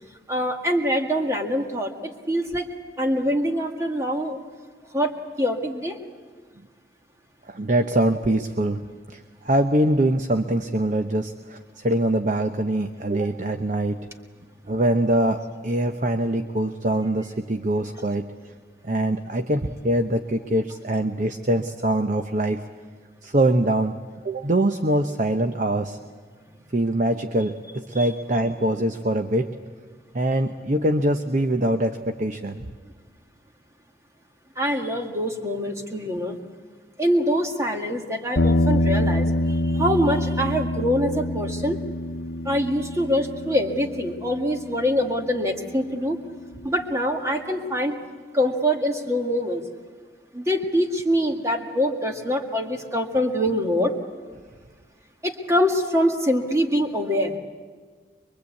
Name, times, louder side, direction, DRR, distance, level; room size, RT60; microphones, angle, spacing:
voice 1, 0.3-2.7 3.0-4.4 4.9-5.1 5.4-6.0 28.0-28.1 34.6-36.4 37.0-41.8 42.5-46.2 46.6-48.0 48.3-49.6 50.3-53.9 55.2-57.4, equal, 15° right, 3 dB, 1.9 m, -24 dB
voice 2, 7.5-8.8 9.1-14.0 14.7-18.3 18.8-22.6 23.2-24.0 24.2-26.0 26.7-29.5 30.1-32.6, right 1 dB, 45° right, 7 dB, 0.8 m, -23 dB
sound 1, 38.4-46.7, left 1 dB, 90° left, 0.8 m, -26 dB
23.5 x 23.5 x 8.4 m, 1.5 s
head